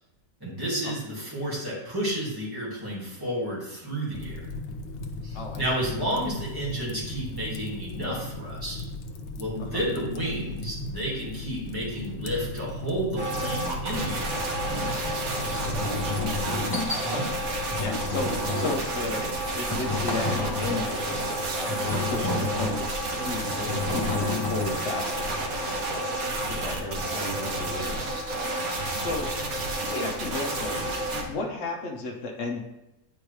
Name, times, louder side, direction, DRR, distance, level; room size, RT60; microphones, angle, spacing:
voice 1, 0.4-4.3 5.2-8.8 9.4-14.4 17.0-17.3, equal, 15° right, -7 dB, 2.1 m, -31 dB
Fire, 4.1-16.2, left 1 dB, 90° left, 1.2 m, -37 dB
sound 1, 13.2-31.2, right 1 dB, 75° right, 1.4 m, -30 dB
sound 2, 14.7-15.0 15.7-17.0 17.7-19.0 19.7-20.9 21.7-22.9 23.7-25.0, left 3 dB, 20° left, 0.7 m, -31 dB
voice 2, 15.3-15.8 16.2-16.6 17.1-17.2 17.8-22.9 23.2-25.4 25.8-26.1 26.4-28.1 28.9-29.3 29.8-30.8 31.1-32.6, left 3 dB, 55° left, 0 dB, 1.1 m, -34 dB
8.5 x 4.4 x 3.2 m, 0.93 s
omnidirectional pair, 1.5 m